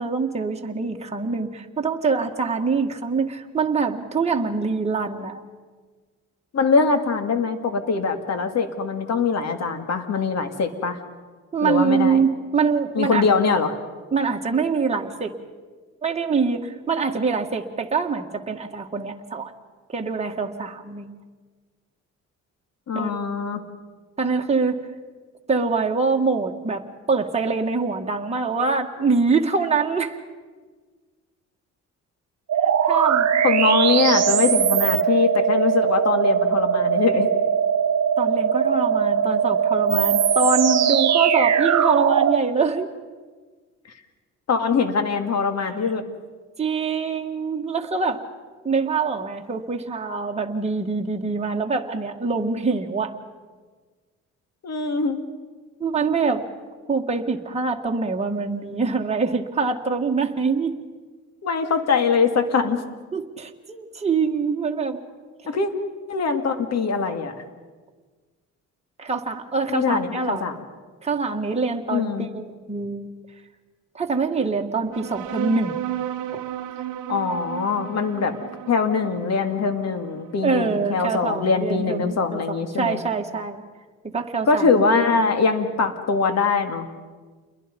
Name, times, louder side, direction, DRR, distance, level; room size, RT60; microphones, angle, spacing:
voice 1, 0.0-5.4 11.5-13.3 14.1-15.3 16.0-19.5 19.9-21.2 22.9-23.1 24.2-24.8 25.5-30.2 32.6-33.4 38.2-42.9 46.6-48.2 48.6-53.1 55.8-56.4 56.9-60.8 63.1-65.0 69.0-70.5 71.0-73.1 73.9-75.8 76.3-76.4 80.4-83.6 84.0-84.7, right 4 dB, 20° right, 1 dB, 1.9 m, -24 dB
voice 2, 6.5-11.0 11.6-12.2 12.9-13.8 22.9-23.6 33.4-37.3 44.5-46.0 54.6-55.2 61.4-62.8 65.5-65.7 66.1-67.3 69.7-70.6 71.9-72.3 77.1-78.3 78.7-83.0 84.5-86.9, left 5 dB, 60° left, 8 dB, 2.4 m, -22 dB
sound 1, 32.5-42.4, right 8 dB, 60° right, 1.5 m, -20 dB
sound 2, 74.9-81.9, right 11 dB, 85° right, 1.0 m, -34 dB
28.5 x 22.0 x 5.4 m, 1.4 s
cardioid pair, 90°, 30 cm